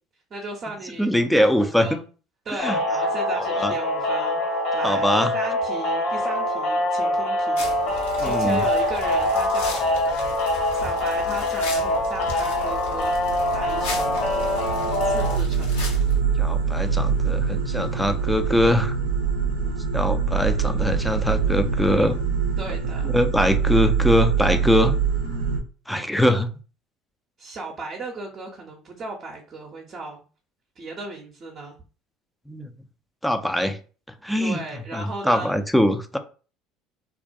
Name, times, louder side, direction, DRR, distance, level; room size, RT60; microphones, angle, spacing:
voice 1, 0.3-2.1 2.4-13.2 13.5-14.3 15.0-15.9 19.5-19.9 22.6-23.1 25.9-26.4 27.4-30.2 30.8-31.8 34.4-35.6, right 2 dB, 40° right, 0.6 m, -36 dB
voice 2, 1.0-1.9 2.6-2.8 3.5-3.7 4.8-5.3 8.2-8.6 16.4-19.0 19.9-22.2 23.0-24.9 25.9-26.5 32.5-32.7 33.2-33.8 34.2-34.6 34.9-36.2, left 1 dB, ahead, 0.4 m, -22 dB
sound 1, 2.6-15.4, left 1 dB, 60° left, 1.1 m, -24 dB
sound 2, 7.6-16.2, left 2 dB, 75° left, 0.8 m, -37 dB
sound 3, 12.0-25.6, right 6 dB, 85° right, 0.5 m, -24 dB
2.4 x 2.1 x 2.6 m
hypercardioid pair, 70°, 0 cm